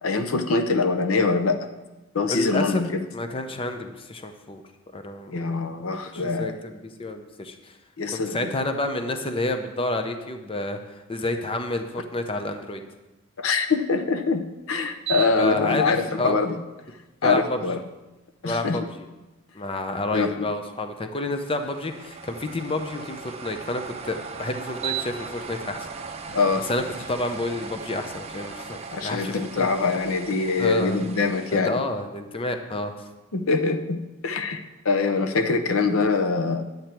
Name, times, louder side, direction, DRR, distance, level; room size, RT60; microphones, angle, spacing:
voice 1, 0.0-1.7 2.1-3.0 5.3-6.5 8.0-8.5 13.4-16.6 17.2-17.8 18.4-18.9 20.1-20.3 26.3-26.7 28.9-31.8 33.3-34.6 34.8-36.6, left 4 dB, 80° left, 8 dB, 0.7 m, -24 dB
voice 2, 2.3-2.8 3.1-4.6 4.9-5.5 6.1-7.7 8.1-12.8 15.4-16.4 17.2-17.6 18.4-19.1 19.5-25.9 26.2-26.4 26.7-29.7 30.6-31.0 31.5-33.0, left 2 dB, 25° left, 7 dB, 0.6 m, -29 dB
sound 1, 15.0-15.6 16.1-16.2 21.3-31.6, right 7 dB, 30° right, 0.7 m, -37 dB
10.5 x 8.0 x 4.5 m, 1.1 s
head